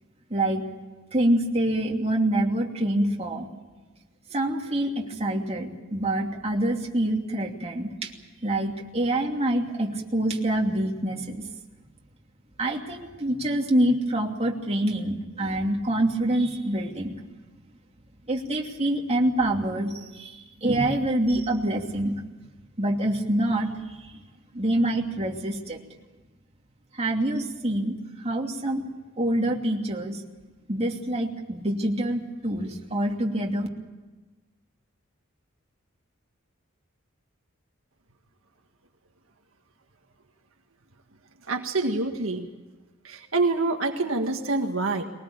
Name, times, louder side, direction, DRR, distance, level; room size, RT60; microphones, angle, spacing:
voice 1, 0.3-0.6 1.1-3.5 4.3-8.1 8.4-11.5 12.6-17.2 18.3-22.2 22.8-24.1 24.5-25.8 26.9-28.8 29.2-30.2 30.7-33.7, right 1 dB, 30° right, 0 dB, 2.9 m, -26 dB
voice 2, 41.5-42.5 43.0-45.0, right 3 dB, 75° right, 3 dB, 1.8 m, -26 dB
22.0 x 19.5 x 8.8 m, 1.2 s
head